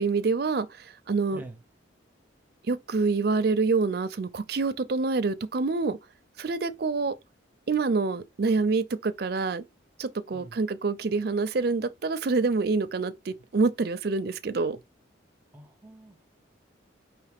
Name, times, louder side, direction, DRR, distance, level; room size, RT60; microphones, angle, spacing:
voice 1, 0.0-1.4 2.7-6.0 6.4-7.1 7.7-9.6 10.0-14.8, right 4 dB, 55° right, 0.4 m, -26 dB
voice 2, 15.5-16.3, right 1 dB, 10° right, 0.7 m, -46 dB
4.8 x 2.9 x 3.4 m
head